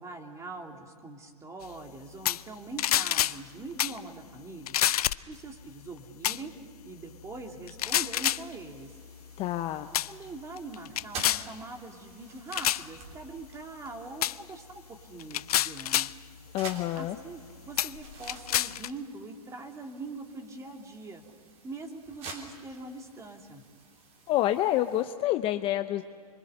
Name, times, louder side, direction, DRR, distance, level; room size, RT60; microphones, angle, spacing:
voice 1, 0.0-4.7 5.3-6.5 6.8-8.9 10.0-16.1 16.9-21.2 21.6-23.6, right 3 dB, 15° right, 3 dB, 2.4 m, -43 dB
sound 1, 2.3-2.5 2.8-3.4 3.8-4.0 4.7-5.3 6.2-6.4 7.7-8.4 9.3-9.6 9.9-10.1 10.6-11.5 12.5-12.9 14.2-14.4 15.2-16.2 17.0-17.1 17.8-18.9, left 12 dB, 70° left, 0.5 m, -27 dB
sound 2, 8.1-25.0, right 4 dB, 35° right, 3.4 m, -49 dB
voice 2, 9.4-9.9 16.5-17.2 24.3-26.0, left 13 dB, 30° left, 9 dB, 0.7 m, -28 dB
26.5 x 23.5 x 6.6 m, 2.1 s
hypercardioid pair, 125°, 20 cm